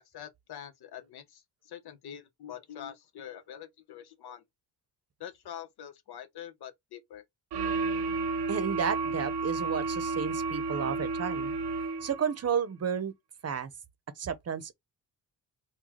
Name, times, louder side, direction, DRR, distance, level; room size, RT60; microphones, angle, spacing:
voice 1, 0.1-4.4 5.2-7.2, left 10 dB, 75° left, 0.9 m, -45 dB
sound 1, 7.5-12.3, right 4 dB, 85° right, 0.8 m, -32 dB
voice 2, 8.5-11.5 12.0-13.1 13.4-13.7 14.2-14.7, right 7 dB, 40° right, 0.7 m, -32 dB
3.8 x 2.2 x 3.0 m
cardioid pair, 90°, 39 cm